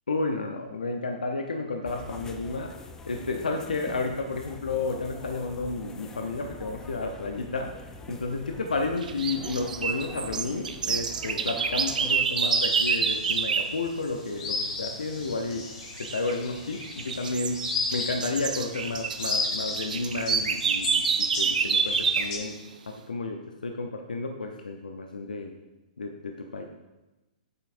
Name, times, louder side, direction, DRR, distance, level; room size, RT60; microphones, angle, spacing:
voice 1, 0.1-2.7 3.0-7.7 8.1-15.6 16.0-17.6 17.9-21.0 21.4-22.5 22.9-25.5 26.0-26.6, left 3 dB, 80° left, 3 dB, 0.8 m, -31 dB
sound 1, 1.8-12.2, left 2 dB, 10° left, 0.6 m, -44 dB
sound 2, 9.0-13.8 16.0-16.3 16.8-22.4, right 6 dB, 70° right, 0.6 m, -28 dB
sound 3, 12.2-22.4, left 3 dB, 50° left, 3.0 m, -35 dB
8.5 x 8.5 x 2.6 m, 1.0 s
figure-of-eight pair, 120°, 5 cm